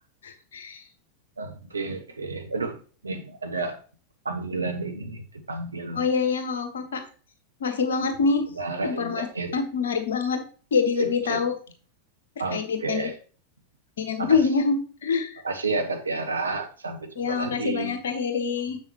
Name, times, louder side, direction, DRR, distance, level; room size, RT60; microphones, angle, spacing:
voice 1, 0.2-0.8 5.9-7.0 7.6-8.5 8.8-9.3 9.5-10.4 10.7-11.5 12.5-13.1 14.0-15.4 17.2-18.8, left 5 dB, 65° left, 7 dB, 1.3 m, -25 dB
voice 2, 1.4-3.8 4.2-6.0 8.6-9.6 11.0-11.4 12.4-13.2 14.2-14.4 15.4-18.0, right 3 dB, 75° right, 5 dB, 1.0 m, -31 dB
7.0 x 6.3 x 2.9 m, 0.39 s
figure-of-eight pair, 90°, 0 cm